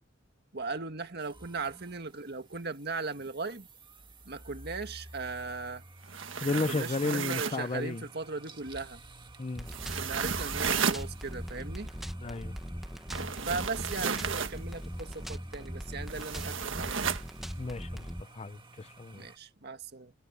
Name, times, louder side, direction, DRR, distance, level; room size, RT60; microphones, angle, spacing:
voice 1, 0.5-3.7 4.3-5.8 6.5-9.0 10.0-11.9 13.4-17.0 19.1-20.1, right 4 dB, 55° right, 1.8 m, -38 dB
sound 1, 1.2-19.4, right 2 dB, 25° right, 1.7 m, -52 dB
sound 2, 6.0-7.7 9.7-11.0 13.1-14.6 16.1-17.3, right 6 dB, 80° right, 1.6 m, -33 dB
voice 2, 6.4-8.0 9.4-9.7 12.2-12.6 17.6-18.1 18.3-19.3, left 3 dB, 35° left, 0.6 m, -33 dB
sound 3, 9.6-18.2, equal, ahead, 1.3 m, -40 dB
head